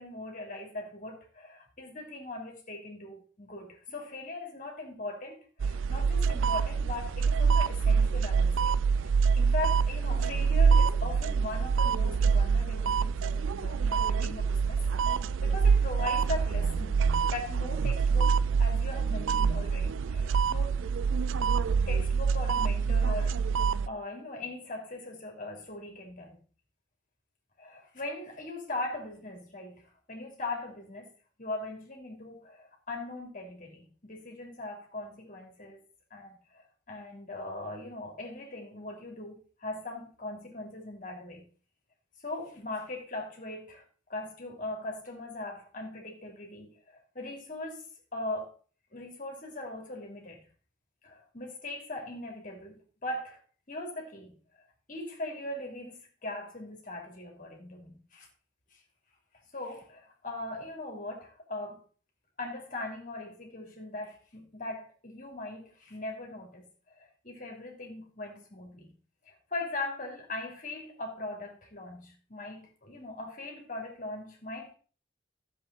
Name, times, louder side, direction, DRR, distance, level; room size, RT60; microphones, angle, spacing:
voice 1, 0.0-8.8 9.4-14.8 15.4-17.0 17.3-20.8 21.9-23.4 23.9-26.4 27.6-29.8 30.1-31.1 31.4-35.8 36.1-41.5 42.2-43.8 44.1-48.5 48.9-50.4 51.0-53.4 53.7-54.4 54.9-58.3 58.7-58.8 59.5-61.8 62.4-68.9 69.3-74.7, left 2 dB, 40° left, 2.9 m, -40 dB
sound 1, 5.6-23.9, right 5 dB, 80° right, 0.4 m, -26 dB
12.5 x 7.5 x 4.1 m
head